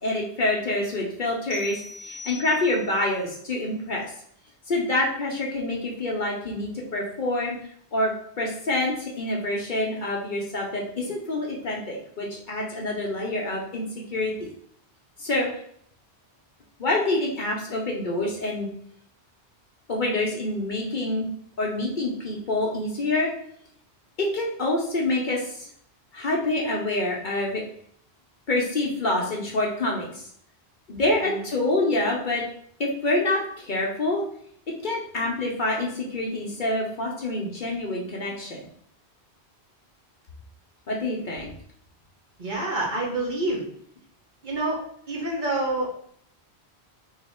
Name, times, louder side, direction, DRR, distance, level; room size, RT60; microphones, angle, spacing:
voice 1, 0.0-4.1 4.7-7.6 7.9-14.5 15.2-15.5 16.8-18.7 19.9-21.3 21.6-23.3 24.2-25.7 26.1-27.6 28.5-30.1 30.9-32.4 32.8-34.2 34.8-38.7 40.9-41.5, left 2 dB, 50° left, -1 dB, 0.8 m, -26 dB
sound 1, 1.5-3.0, left 2 dB, 85° right, 1.4 m, -41 dB
voice 2, 42.4-43.6 44.4-44.8 45.1-45.9, right 2 dB, 50° right, -4 dB, 1.2 m, -27 dB
3.1 x 2.8 x 4.2 m, 0.66 s
omnidirectional pair, 1.1 m